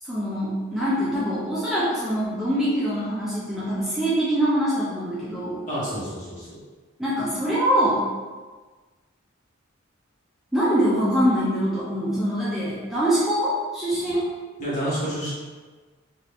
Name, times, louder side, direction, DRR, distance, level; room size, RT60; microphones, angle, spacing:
voice 1, 0.0-5.6 7.0-8.1 10.5-14.2, equal, ahead, -9 dB, 0.5 m, -24 dB
voice 2, 5.7-6.6 14.6-15.3, equal, 40° left, -8 dB, 1.1 m, -29 dB
2.7 x 2.4 x 3.3 m, 1.4 s
head